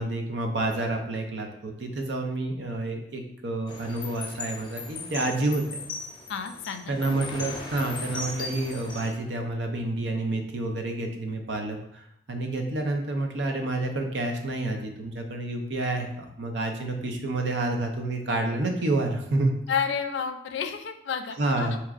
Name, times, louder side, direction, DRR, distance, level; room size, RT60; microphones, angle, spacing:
voice 1, 0.0-5.6 6.9-19.5 21.4-21.8, right 2 dB, 80° right, 4 dB, 0.6 m, -29 dB
sound 1, 3.7-9.1, left 3 dB, 25° left, 0.5 m, -38 dB
voice 2, 6.3-7.0 19.7-21.8, left 6 dB, 90° left, 7 dB, 0.4 m, -30 dB
4.6 x 3.0 x 2.4 m, 0.76 s
head